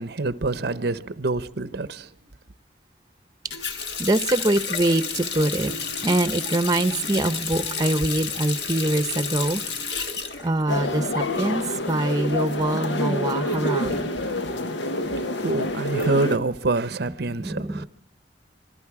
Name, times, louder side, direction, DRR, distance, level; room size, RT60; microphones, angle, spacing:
voice 1, 0.0-2.1 15.1-17.9, right 3 dB, 65° right, 0.8 m, -26 dB
Water tap faucet, 3.5-11.2 11.6-12.6, left 5 dB, 65° left, 1.8 m, -31 dB
voice 2, 4.0-9.7 10.4-14.1 17.4-17.9, right 1 dB, 20° right, 0.8 m, -24 dB
sound 1, 10.7-16.4, left 1 dB, 80° left, 1.4 m, -27 dB
26.0 x 23.0 x 4.8 m
head